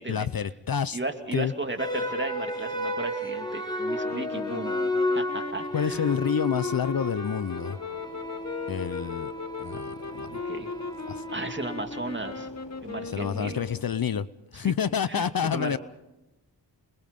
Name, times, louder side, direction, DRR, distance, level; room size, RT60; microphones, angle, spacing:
voice 1, 0.1-1.0 1.3-1.5 5.7-7.8 8.7-9.3 9.6-10.3 11.1-11.2 13.0-14.3 14.5-15.8, left 7 dB, 55° left, 17 dB, 0.7 m, -28 dB
voice 2, 0.9-4.8 5.1-6.1 10.3-10.7 11.3-12.5 12.8-13.7 14.6-14.7 15.1-15.8, right 2 dB, 25° right, 5 dB, 2.6 m, -35 dB
sound 1, 1.8-12.2, left 1 dB, 10° left, 4.8 m, -33 dB
sound 2, 4.0-14.0, left 4 dB, 40° left, 1.2 m, -38 dB
sound 3, 7.5-13.8, left 4 dB, 90° left, 3.1 m, -50 dB
27.5 x 21.5 x 5.3 m, 0.97 s
cardioid pair, 60°, 43 cm